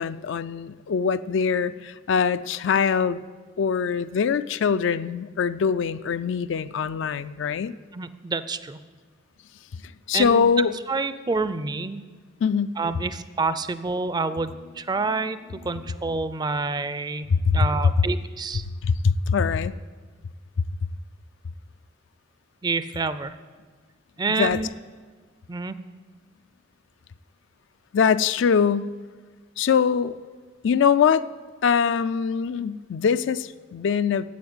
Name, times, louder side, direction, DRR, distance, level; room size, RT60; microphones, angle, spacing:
voice 1, 0.0-3.2 3.6-7.7 10.1-10.7 12.4-12.8 17.3-17.6 18.8-19.7 24.3-24.6 27.9-28.9 29.6-30.1 30.6-31.3 31.6-34.2, left 6 dB, 65° left, 13 dB, 0.4 m, -23 dB
voice 2, 7.9-8.8 10.1-10.5 10.9-12.0 12.8-15.4 15.6-18.6 22.6-23.4 24.2-24.7 25.5-25.8, right 3 dB, 20° right, 13 dB, 0.4 m, -28 dB
9.4 x 8.0 x 8.8 m, 1.5 s
head